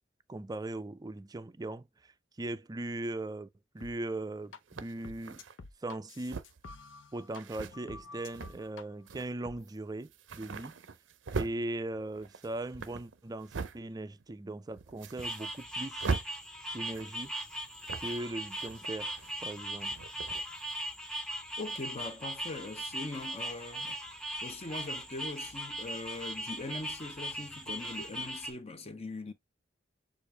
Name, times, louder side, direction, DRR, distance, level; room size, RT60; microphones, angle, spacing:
voice 1, 0.3-2.1 2.4-3.5 3.7-5.4 5.8-6.4 7.1-10.7 11.4-16.1 16.7-17.3 18.0-19.1 19.4-20.0, right 2 dB, 20° right, 0.4 m, -39 dB
sound 1, 3.8-3.9 4.5-4.6 5.0-7.4 7.7-8.8 9.4-9.6, left 3 dB, 85° left, 0.8 m, -48 dB
sound 2, 3.8-3.9 4.7-5.6 6.2-6.7 7.3-7.7 8.2-8.7 9.1-9.3 9.6-9.8 10.0-11.6 12.1-13.8 14.2-14.3 14.7-15.7 16.0-16.3 16.8-17.3 17.8-18.2 18.5-19.5 19.8-20.5, right 4 dB, 80° right, 0.5 m, -40 dB
sound 3, 15.2-28.5, right 1 dB, 5° left, 0.8 m, -39 dB
voice 2, 21.6-29.3, left 2 dB, 35° left, 0.9 m, -41 dB
6.5 x 2.5 x 3.2 m
head